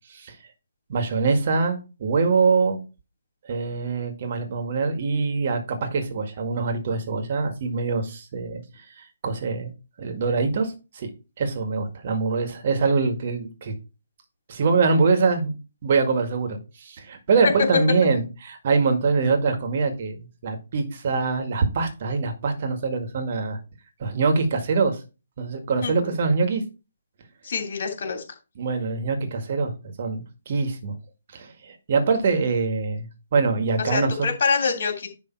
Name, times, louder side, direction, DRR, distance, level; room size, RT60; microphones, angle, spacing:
voice 1, 0.9-2.8 3.5-8.6 9.0-9.7 10.0-11.1 11.4-13.7 14.5-15.5 15.8-23.6 24.0-25.0 25.4-26.6 28.6-29.7 30.0-30.9 31.3-34.3, right 4 dB, 45° right, 5 dB, 1.9 m, -24 dB
voice 2, 25.8-26.1 27.4-28.2 33.8-35.1, left 5 dB, 55° left, 4 dB, 3.1 m, -26 dB
10.5 x 3.6 x 4.6 m, 0.31 s
figure-of-eight pair, 140°, 0 cm